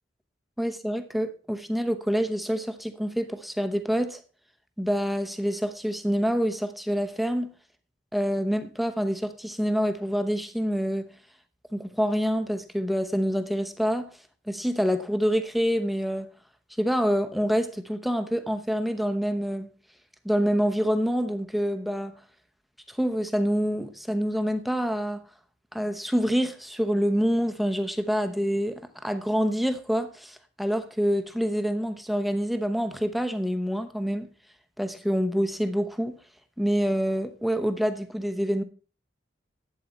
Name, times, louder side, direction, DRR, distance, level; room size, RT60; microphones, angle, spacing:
voice 1, 0.6-4.2 4.8-7.5 8.1-11.1 11.7-14.1 14.5-16.3 16.8-19.7 20.2-22.2 22.9-25.2 25.7-34.3 34.8-36.2 36.6-38.6, equal, ahead, 0.8 m, -26 dB
11.5 x 8.4 x 4.3 m
head